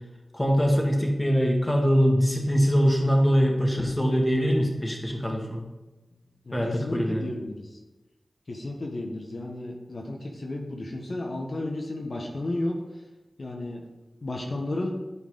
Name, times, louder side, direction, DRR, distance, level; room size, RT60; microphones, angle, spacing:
voice 1, 0.3-5.6 6.5-7.2, equal, 10° left, 0 dB, 1.8 m, -23 dB
voice 2, 6.4-7.8 8.5-12.8 13.4-13.8 14.2-14.9, left 2 dB, 60° left, 0 dB, 1.2 m, -33 dB
11.0 x 4.6 x 3.9 m, 1.1 s
cardioid pair, 50°, 0 cm